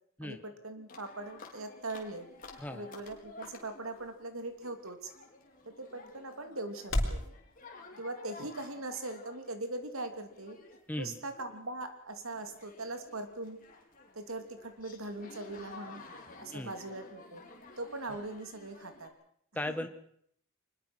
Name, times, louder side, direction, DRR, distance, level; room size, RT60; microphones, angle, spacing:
voice 1, 0.2-2.3 2.7-5.1 5.6-7.2 8.0-10.6 11.0-13.6 14.1-16.0 16.4-17.4 17.8-19.1 19.7-19.8, right 2 dB, 85° right, 7 dB, 3.1 m, -41 dB
sound 1, 0.9-19.1, left 3 dB, 40° left, 4.4 m, -53 dB
sound 2, 1.0-7.3, left 1 dB, 65° left, 4.0 m, -41 dB
voice 2, 10.9-11.2 16.5-16.7 19.5-19.9, left 1 dB, 10° left, 7 dB, 1.6 m, -37 dB
24.0 x 21.0 x 6.3 m, 0.67 s
head